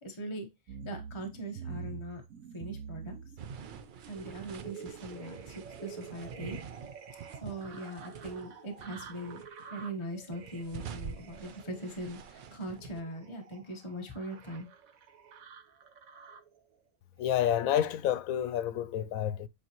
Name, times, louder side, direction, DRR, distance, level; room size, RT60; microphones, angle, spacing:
voice 1, 0.0-2.2 2.5-3.1 4.1-6.6 7.4-9.4 9.7-14.7, right 1 dB, 20° left, 1.2 m, -41 dB
sound 1, 0.7-16.6 17.2-17.9 18.4-18.5, right 6 dB, 75° right, 1.3 m, -48 dB
sound 2, 3.4-8.5 8.8-9.7 10.1-13.0, right 7 dB, 60° right, 0.5 m, -46 dB
voice 2, 17.2-19.5, left 10 dB, 90° left, 1.1 m, -29 dB
8.5 x 4.1 x 3.0 m
omnidirectional pair, 1.5 m